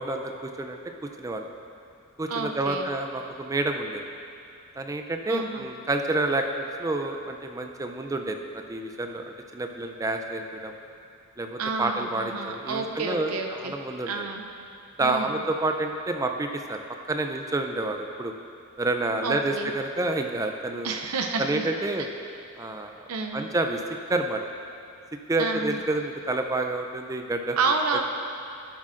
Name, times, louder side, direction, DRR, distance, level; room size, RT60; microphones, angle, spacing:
voice 1, 0.0-1.5 2.2-4.0 4.8-9.2 9.5-10.7 11.4-14.3 15.0-16.8 17.1-18.3 18.8-21.0 21.4-22.1 22.6-23.0 23.3-23.8 24.1-24.4 25.3-27.6, right 2 dB, 15° right, 4 dB, 0.4 m, -29 dB
voice 2, 2.3-2.9 5.3-5.7 11.6-13.7 14.1-14.5 15.0-15.4 19.2-19.7 20.8-21.7 23.1-23.5 25.4-25.8 27.6-28.0, right 4 dB, 90° right, 3 dB, 0.5 m, -29 dB
11.5 x 7.4 x 2.5 m, 2.5 s
head